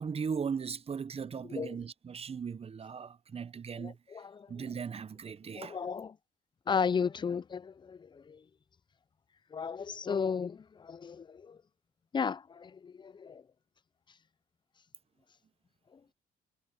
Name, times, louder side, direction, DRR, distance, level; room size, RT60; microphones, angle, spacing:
voice 1, 0.0-5.8, right 6 dB, 30° right, 0.7 m, -38 dB
voice 2, 3.8-4.5 5.6-6.1 6.7-8.4 9.5-11.6 12.1-13.4, left 6 dB, 25° left, 0.4 m, -34 dB
cardioid pair, 90°, 20 cm